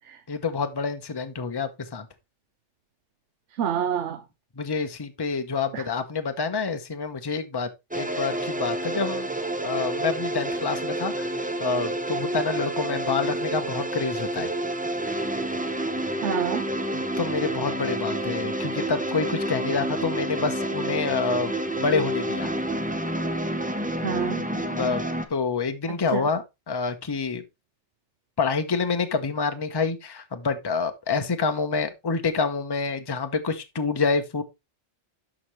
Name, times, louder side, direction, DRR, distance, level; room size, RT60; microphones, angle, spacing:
voice 1, 0.3-2.1 4.6-9.3 9.6-14.5 16.9-22.5 24.5-25.0 25.3-27.4 28.4-34.4, left 4 dB, 25° left, 0.8 m, -27 dB
voice 2, 3.6-4.2 5.7-5.8 16.2-16.6 24.0-24.4 25.9-26.3, right 8 dB, 90° right, 1.0 m, -27 dB
sound 1, 7.9-25.3, right 1 dB, 10° right, 0.6 m, -29 dB
11.5 x 5.0 x 3.1 m
omnidirectional pair, 1.2 m